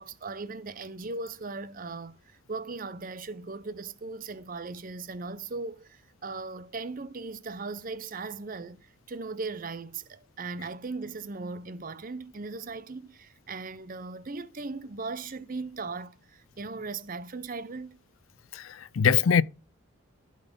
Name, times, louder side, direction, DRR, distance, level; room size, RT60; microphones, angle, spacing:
voice 1, 0.0-18.0, right 3 dB, 40° right, 0.6 m, -38 dB
voice 2, 18.5-19.4, left 7 dB, 75° left, 0.4 m, -23 dB
11.5 x 4.0 x 5.3 m
head